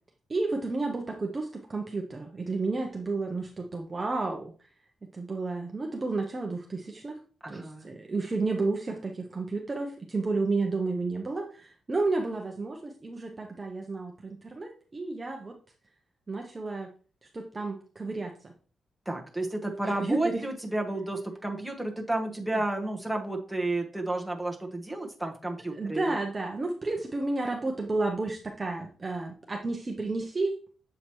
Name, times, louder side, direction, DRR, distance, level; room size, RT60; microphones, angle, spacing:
voice 1, 0.3-4.5 5.1-7.2 7.5-15.5 16.3-16.9 17.3-18.5 19.8-20.4 22.5-22.6 25.7-30.5, right 3 dB, 20° right, 2 dB, 0.6 m, -31 dB
voice 2, 7.4-7.9 19.1-26.1, right 2 dB, ahead, 1 dB, 1.0 m, -32 dB
7.3 x 4.9 x 2.9 m, 0.40 s
wide cardioid pair, 165°, 0 cm